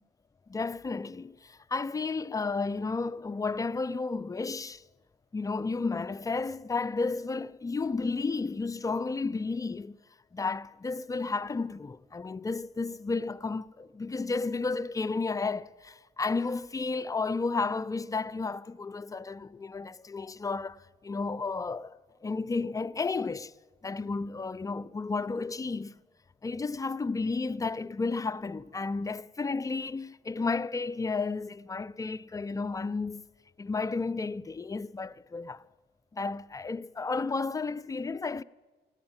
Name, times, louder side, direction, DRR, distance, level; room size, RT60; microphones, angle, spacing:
voice 1, 0.5-4.8 5.3-10.0 10.3-23.5 23.8-25.9 26.4-33.2 33.6-35.6 36.1-38.4, left 4 dB, 15° left, 0.4 m, -32 dB
15.0 x 9.5 x 8.8 m
cardioid pair, 90°, 20 cm